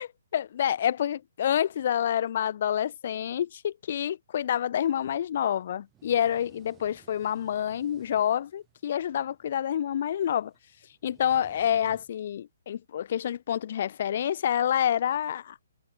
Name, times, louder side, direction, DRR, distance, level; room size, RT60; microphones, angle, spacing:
voice 1, 0.3-10.5 11.0-15.6, left 10 dB, 45° left, 0.6 m, -28 dB
sound 1, 4.9-12.4, right 12 dB, 15° right, 7.2 m, -60 dB
figure-of-eight pair, 130°, 0 cm